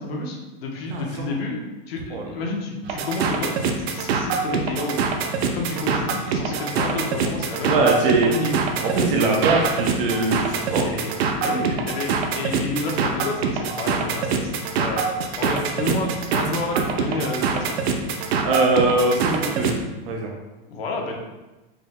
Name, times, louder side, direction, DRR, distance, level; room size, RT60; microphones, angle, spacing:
voice 1, 0.0-1.6 1.9-5.0 5.5-8.6 10.8-11.1 11.4-14.5 14.8-15.1 15.4-17.7 20.7-21.1, left 2 dB, 75° left, 1 dB, 0.9 m, -30 dB
voice 2, 0.9-1.3 2.1-2.3 7.6-8.3 8.8-10.9 11.5-11.8 18.4-19.7 20.1-20.3, right 3 dB, 65° right, 0 dB, 1.0 m, -22 dB
sound 1, 2.8-19.8, right 5 dB, 85° right, 0.6 m, -24 dB
4.9 x 2.1 x 3.6 m, 1.1 s
supercardioid pair, 175°, 30 cm